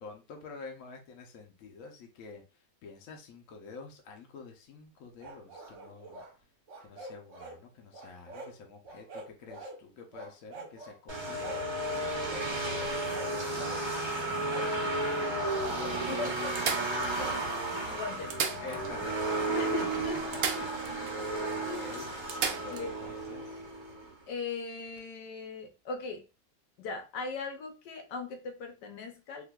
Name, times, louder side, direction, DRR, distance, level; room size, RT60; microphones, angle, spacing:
voice 1, 0.0-2.4 2.8-6.2 6.8-11.5 11.8-13.8 14.7-16.9 17.1-17.4 18.6-19.7 20.3-22.1 22.5-23.6, left 4 dB, 60° left, 2 dB, 1.0 m, -48 dB
sound 1, 5.2-6.3 6.7-7.6 7.9-8.5 8.8-9.8 10.1-11.0 11.4-11.7 12.3-12.5 13.0-13.8 14.5-14.7 15.5-17.4, right 2 dB, 55° right, 1.0 m, -45 dB
sound 2, 11.1-24.1, right 2 dB, 30° right, 0.5 m, -33 dB
sound 3, 13.0-14.7 15.3-15.4 15.7-15.8 16.5-17.5 18.1-19.1 19.4-19.5 20.3-21.2 21.5-21.6 22.3-22.9 24.8-25.0, right 7 dB, 85° right, 0.7 m, -36 dB
voice 2, 17.9-18.4 19.5-20.2 21.7-21.8 22.7-22.9 24.3-26.3 26.8-29.4, left 4 dB, 75° left, 5 dB, 1.3 m, -39 dB
3.6 x 2.6 x 2.3 m, 0.29 s
omnidirectional pair, 1.9 m